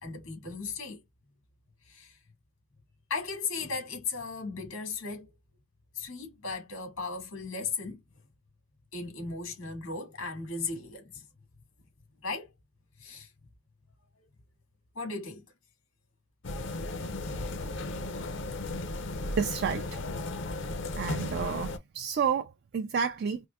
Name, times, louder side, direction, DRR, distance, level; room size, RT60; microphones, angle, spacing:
voice 1, 0.0-1.0 1.8-2.2 3.1-5.3 5.9-8.0 8.9-11.3 12.2-12.5 13.0-13.3 15.0-15.4, left 4 dB, 85° left, 2.0 m, -36 dB
sound 1, 16.4-21.8, left 2 dB, 60° left, 0.6 m, -35 dB
voice 2, 19.4-20.0 21.0-23.4, right 6 dB, 50° right, 0.3 m, -30 dB
4.5 x 2.5 x 2.2 m
head